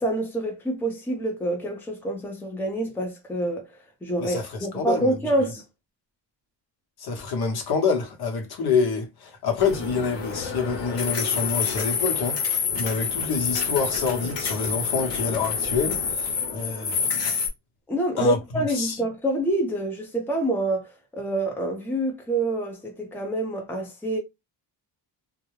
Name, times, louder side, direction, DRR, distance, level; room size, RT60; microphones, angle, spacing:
voice 1, 0.0-3.7 4.0-5.6 17.9-24.2, right 1 dB, 5° left, 0.6 m, -27 dB
voice 2, 4.2-5.5 7.0-17.4 18.2-18.4 18.7-19.0, left 5 dB, 60° left, 1.0 m, -27 dB
sound 1, 9.6-17.5, left 6 dB, 80° left, 1.0 m, -28 dB
2.3 x 2.1 x 3.1 m
cardioid pair, 135°, 43 cm